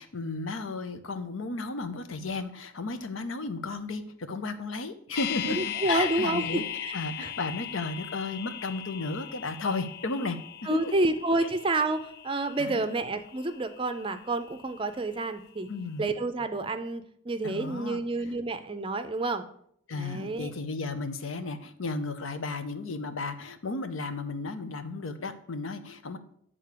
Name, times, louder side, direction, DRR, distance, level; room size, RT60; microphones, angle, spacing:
voice 1, 0.0-6.6 6.9-11.1 11.4-11.5 12.6-12.8 15.7-16.0 17.4-18.0 19.9-26.2, left 3 dB, 85° left, 9 dB, 0.7 m, -34 dB
sound 1, 5.1-15.2 15.5-15.6, left 10 dB, 50° left, 0.3 m, -39 dB
voice 2, 5.5-6.9 7.2-7.3 10.7-15.7 16.0-19.4 19.9-20.5, right 2 dB, 25° right, 10 dB, 0.5 m, -29 dB
8.1 x 3.7 x 6.7 m, 0.67 s
head